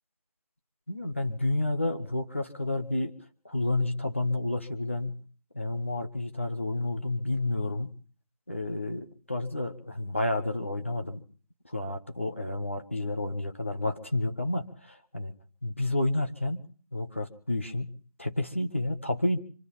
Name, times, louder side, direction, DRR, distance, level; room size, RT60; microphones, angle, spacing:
voice 1, 0.9-3.1 3.4-5.2 5.5-8.0 8.5-11.2 11.7-15.3 15.6-16.6 16.9-19.4, left 2 dB, 20° left, 5 dB, 1.0 m, -30 dB
26.5 x 9.3 x 5.7 m, 0.42 s
figure-of-eight pair, 170°, 19 cm